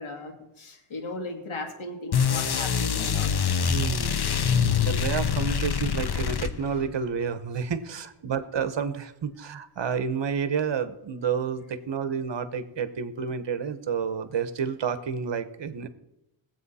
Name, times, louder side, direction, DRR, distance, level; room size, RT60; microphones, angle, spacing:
voice 1, 0.0-3.3 6.1-6.8, left 2 dB, 70° left, 2 dB, 2.5 m, -37 dB
sound 1, 2.1-6.9, left 7 dB, 50° left, 0.9 m, -25 dB
voice 2, 3.7-4.4 4.9-15.9, right 6 dB, 60° right, 12 dB, 1.0 m, -30 dB
20.0 x 8.1 x 4.2 m, 0.90 s
wide cardioid pair, 90°, 49 cm